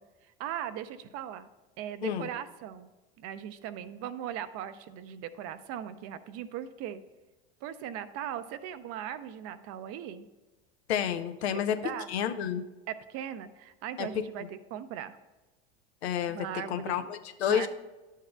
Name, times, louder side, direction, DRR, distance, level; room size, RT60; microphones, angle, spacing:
voice 1, 0.2-1.5 1.8-2.9 3.2-7.0 7.6-10.3 11.5-12.1 12.9-15.2 16.3-17.1 17.5-17.7, right 10 dB, 50° right, 13 dB, 0.6 m, -39 dB
voice 2, 10.9-11.8 12.1-12.6 14.0-14.2 16.0-17.7, left 9 dB, 80° left, 9 dB, 0.7 m, -30 dB
11.5 x 7.4 x 2.2 m, 1.1 s
hypercardioid pair, 90°, 32 cm